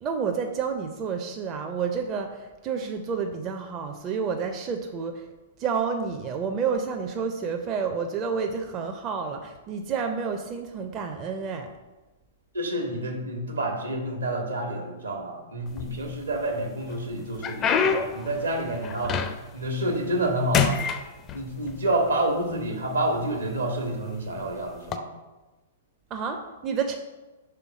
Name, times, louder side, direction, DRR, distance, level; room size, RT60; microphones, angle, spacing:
voice 1, 0.0-5.3 5.6-11.7 26.1-27.0, right 6 dB, 30° right, 4 dB, 0.5 m, -29 dB
voice 2, 12.5-19.2 19.5-20.8 21.3-25.1, right 1 dB, 75° right, 3 dB, 1.1 m, -28 dB
sound 1, 15.7-16.4 16.9-19.6 20.0-20.3 20.5-21.8 22.6-22.7 23.4-23.6 24.8-25.0, left 6 dB, 25° left, 0.4 m, -26 dB
5.6 x 3.5 x 5.0 m, 1.1 s
figure-of-eight pair, 105°, 0 cm